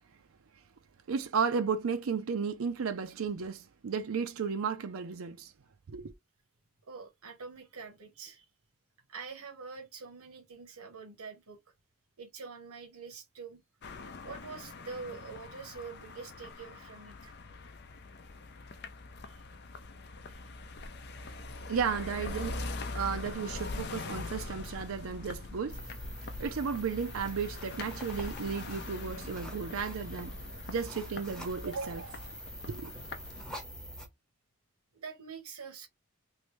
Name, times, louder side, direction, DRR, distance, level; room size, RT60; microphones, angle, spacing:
voice 1, 1.1-5.5 5.9-6.1 21.7-22.6 22.9-25.8 26.4-30.4 30.7-32.2 32.7-32.9, right 6 dB, 65° right, 0.5 m, -34 dB
voice 2, 6.9-8.4 9.1-11.6 12.2-13.6 14.2-17.3 19.2-19.4 20.3-20.5 34.9-35.9, right 5 dB, 90° right, 1.2 m, -45 dB
sound 1, 13.8-33.4, left 3 dB, 50° left, 0.5 m, -43 dB
sound 2, 25.7-34.1, equal, 5° left, 0.8 m, -44 dB
3.2 x 2.6 x 3.1 m
head